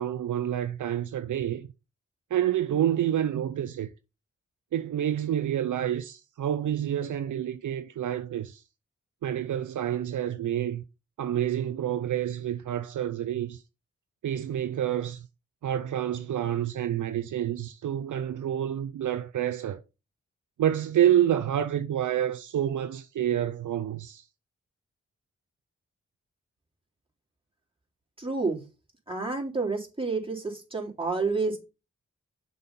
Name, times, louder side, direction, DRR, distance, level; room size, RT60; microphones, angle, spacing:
voice 1, 0.0-1.7 2.3-3.9 4.7-8.6 9.2-10.8 11.2-13.6 14.2-15.3 15.6-19.8 20.6-24.2, right 11 dB, 70° right, 0.6 m, -28 dB
voice 2, 28.2-28.6 29.1-31.6, right 3 dB, 15° right, 3.2 m, -29 dB
6.6 x 5.5 x 4.1 m
cardioid pair, 40°, 31 cm